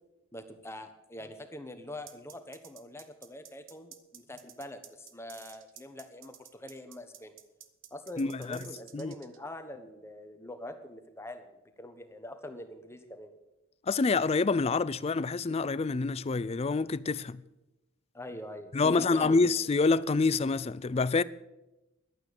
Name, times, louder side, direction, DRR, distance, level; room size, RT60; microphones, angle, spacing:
voice 1, 0.3-7.4 7.9-13.3 18.1-19.4, left 1 dB, 10° left, 1.2 m, -44 dB
sound 1, 2.1-9.4, right 11 dB, 60° right, 1.0 m, -51 dB
voice 2, 8.2-8.6 8.9-9.1 13.9-17.4 18.7-21.2, left 4 dB, 30° left, 0.4 m, -27 dB
11.5 x 8.9 x 9.0 m
head